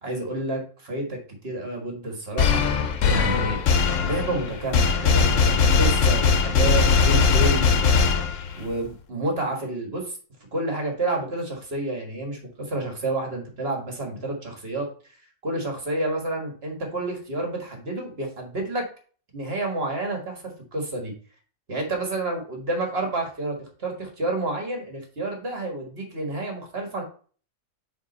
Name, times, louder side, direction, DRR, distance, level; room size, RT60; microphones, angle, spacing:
voice 1, 0.0-2.6 3.0-3.6 4.0-8.0 8.6-10.1 10.5-14.9 15.4-18.8 19.3-20.4 20.7-21.1 21.7-27.0, right 2 dB, 50° right, 2 dB, 2.0 m, -29 dB
sound 1, 2.4-8.7, left 5 dB, 80° left, 1.1 m, -20 dB
7.3 x 3.4 x 5.4 m, 0.41 s
omnidirectional pair, 1.3 m